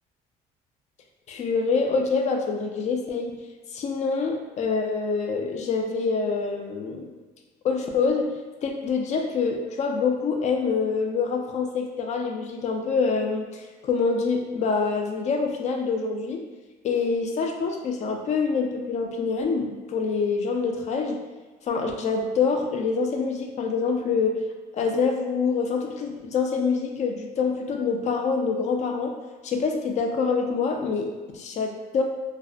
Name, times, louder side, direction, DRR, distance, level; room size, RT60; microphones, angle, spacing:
voice 1, 1.3-3.3 3.7-7.1 7.6-16.4 16.8-21.2 21.6-24.4 24.7-29.1 29.4-32.0, left 4 dB, 45° left, 2 dB, 0.4 m, -26 dB
2.5 x 2.1 x 2.4 m, 1.3 s
cardioid pair, 110°, 17 cm